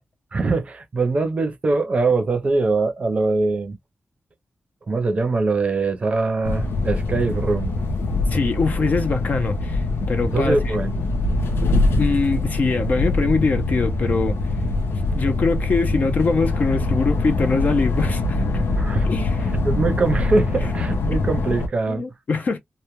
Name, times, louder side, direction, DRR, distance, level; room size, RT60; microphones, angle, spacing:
voice 1, 0.3-3.8 4.9-7.7 10.3-11.0 18.8-22.0, right 3 dB, 30° right, 0.6 m, -22 dB
sound 1, 6.4-21.7, left 2 dB, 90° left, 0.6 m, -23 dB
voice 2, 8.3-10.7 12.0-14.4 15.1-18.6 19.1-19.4 21.9-22.6, left 4 dB, 45° left, 0.5 m, -23 dB
2.1 x 2.1 x 2.9 m
wide cardioid pair, 180°, 4 cm